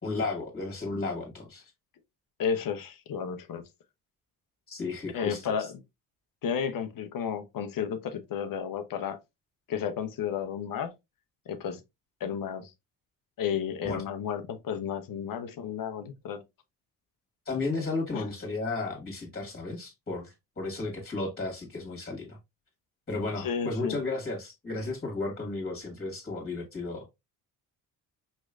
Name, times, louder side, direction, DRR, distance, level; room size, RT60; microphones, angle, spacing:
voice 1, 0.0-1.7 4.7-5.7 13.8-14.0 17.5-22.4 23.1-27.1, left 3 dB, 25° left, 1.9 m, -34 dB
voice 2, 2.4-3.6 5.1-5.7 6.4-9.2 9.7-10.9 11.5-11.8 12.2-12.7 13.4-16.4 18.1-18.2 23.4-24.0, left 7 dB, 55° left, 0.9 m, -32 dB
5.3 x 3.1 x 2.4 m
supercardioid pair, 70°, 40 cm